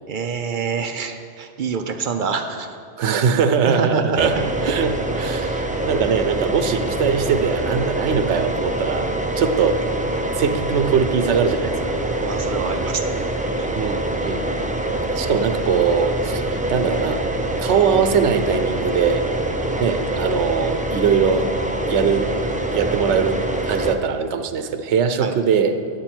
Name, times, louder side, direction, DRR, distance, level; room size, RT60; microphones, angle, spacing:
voice 1, 0.1-2.7 3.7-4.7 12.1-13.1 13.6-13.7 25.2-25.3, right 5 dB, 55° right, 7 dB, 0.6 m, -26 dB
voice 2, 3.0-9.1 9.4-9.8 10.4-11.9 13.7-14.5 15.1-17.2 17.6-19.3 19.8-21.5 21.9-22.3 22.7-25.8, right 6 dB, 90° right, 9 dB, 0.9 m, -21 dB
sound 1, 4.2-24.0, right 1 dB, 10° right, 0.3 m, -25 dB
9.5 x 9.0 x 4.5 m, 2.3 s
omnidirectional pair, 1.1 m